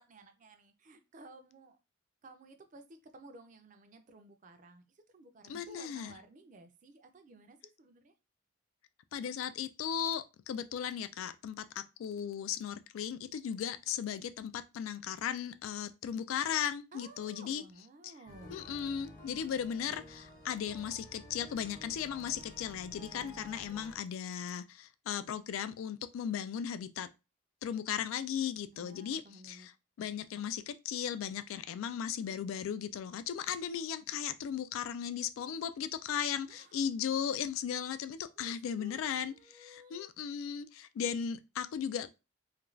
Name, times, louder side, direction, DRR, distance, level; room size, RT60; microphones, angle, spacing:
voice 1, 0.0-1.8 2.2-8.1 16.9-18.6 28.7-29.7 36.5-36.8 38.4-40.1, right 2 dB, 40° right, 0.4 m, -55 dB
voice 2, 5.5-6.1 9.1-17.6 18.0-18.1 18.5-27.1 27.6-29.7 30.0-42.1, left 8 dB, 90° left, 0.3 m, -36 dB
sound 1, 18.3-24.0, equal, 50° left, 0.9 m, -52 dB
2.5 x 2.2 x 3.1 m
head